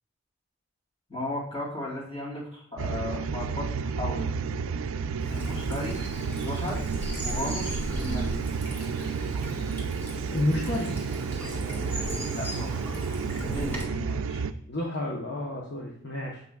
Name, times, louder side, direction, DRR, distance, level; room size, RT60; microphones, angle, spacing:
voice 1, 1.1-4.3 5.3-6.0 6.4-6.9 7.2-8.5 12.3-12.8 13.5-14.4, left 1 dB, 25° left, -4 dB, 2.4 m, -35 dB
sound 1, 2.8-14.5, right 5 dB, 70° right, 0.3 m, -31 dB
Bird vocalization bird call bird song / Stream, 5.2-13.8, equal, 10° left, 1.5 m, -37 dB
voice 2, 10.3-10.9 14.7-16.4, left 1 dB, 50° left, -2 dB, 0.8 m, -30 dB
7.5 x 5.9 x 2.3 m, 0.68 s
head